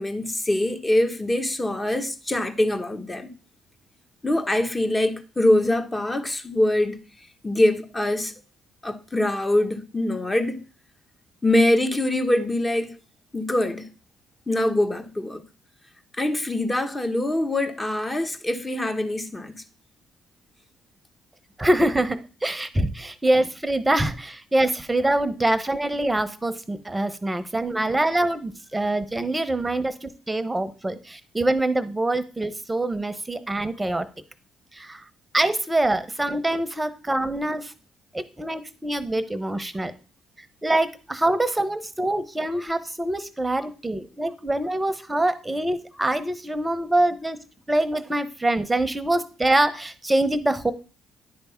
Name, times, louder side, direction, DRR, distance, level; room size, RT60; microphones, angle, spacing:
voice 1, 0.0-3.3 4.2-7.0 7.4-8.3 8.8-10.6 11.4-13.0 13.3-13.9 14.5-15.4 16.2-19.6, left 1 dB, 20° left, 1.1 m, -23 dB
voice 2, 21.6-34.1 34.7-35.0 35.3-37.7 38.1-39.9 40.6-47.4 47.7-50.7, right 1 dB, 15° right, 0.9 m, -24 dB
10.0 x 3.5 x 5.7 m
supercardioid pair, 70°, 0 cm